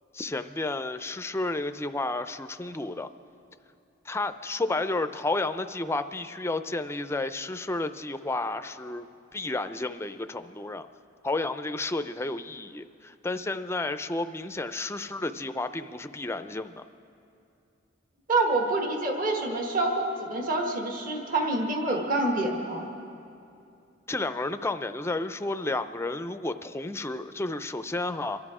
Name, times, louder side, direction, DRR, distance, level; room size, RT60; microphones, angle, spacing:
voice 1, 0.1-3.1 4.1-9.1 9.3-10.9 11.2-16.8 24.1-28.4, left 2 dB, 15° left, 10 dB, 0.4 m, -31 dB
voice 2, 18.3-22.9, right 2 dB, 45° right, 1 dB, 1.4 m, -27 dB
26.5 x 11.5 x 4.8 m, 2.6 s
head